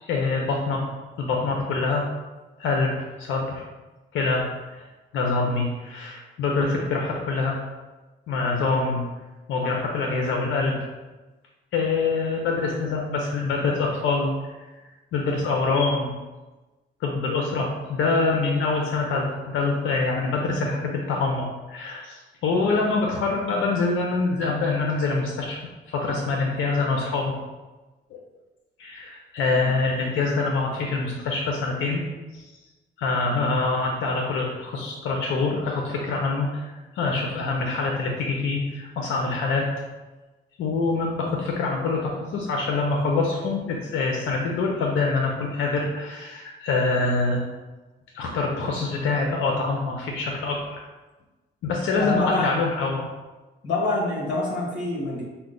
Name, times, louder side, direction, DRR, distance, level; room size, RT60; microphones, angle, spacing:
voice 1, 0.0-0.8 1.2-2.1 2.6-3.6 4.1-4.5 4.8-4.9 5.1-7.6 8.3-9.0 9.5-10.8 11.7-14.3 15.1-16.1 17.0-25.6 25.9-27.3 28.8-32.0 32.3-32.4 33.0-39.7 40.6-47.4 48.1-50.6 51.6-53.1, left 3 dB, 80° left, 0 dB, 0.6 m, -25 dB
voice 2, 33.2-33.6 52.0-52.5 53.6-55.2, left 2 dB, 65° left, -4 dB, 1.3 m, -27 dB
5.7 x 2.1 x 3.8 m, 1.2 s
cardioid pair, 90°, 20 cm